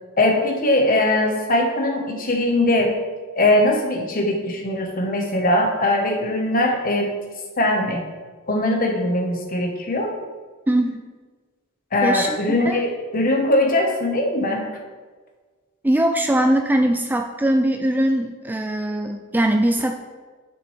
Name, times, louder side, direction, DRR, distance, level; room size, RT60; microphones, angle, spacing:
voice 1, 0.2-3.0 3.3-7.2 7.6-8.0 8.5-10.1 11.9-14.7, left 1 dB, 40° left, 2 dB, 1.2 m, -20 dB
voice 2, 10.7-11.0 12.0-12.8 15.8-19.9, right 1 dB, 10° right, 4 dB, 0.3 m, -21 dB
11.0 x 5.9 x 3.3 m, 1.4 s
head